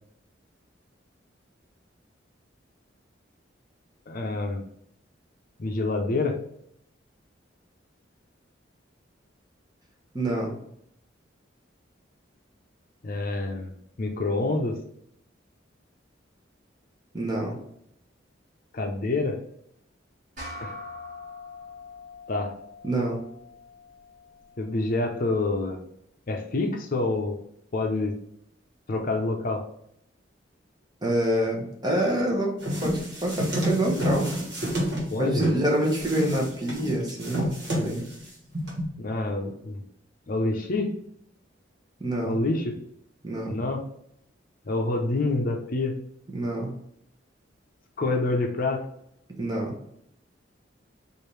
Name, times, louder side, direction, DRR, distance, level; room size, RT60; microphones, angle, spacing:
voice 1, 4.1-4.6 5.6-6.4 13.0-13.7 14.0-14.8 18.7-19.4 20.6-20.7 22.3-22.5 24.6-25.8 26.3-27.4 27.7-28.1 28.9-29.6 35.1-35.5 39.0-39.8 40.3-40.9 42.2-42.8 43.5-43.8 44.6-45.9 48.0-48.8, left 2 dB, 50° left, 3 dB, 0.6 m, -27 dB
voice 2, 10.1-10.6 17.1-17.6 22.8-23.2 31.0-34.3 35.2-38.0 42.0-42.4 43.2-43.6 46.3-46.7 49.4-49.7, right 1 dB, 20° right, -1 dB, 0.9 m, -27 dB
sound 1, 20.4-25.1, left 2 dB, 45° right, 1.6 m, -43 dB
sound 2, 32.6-35.6 35.9-38.2 38.5-38.9, equal, 65° right, 1.4 m, -28 dB
4.9 x 2.6 x 3.1 m, 0.73 s
head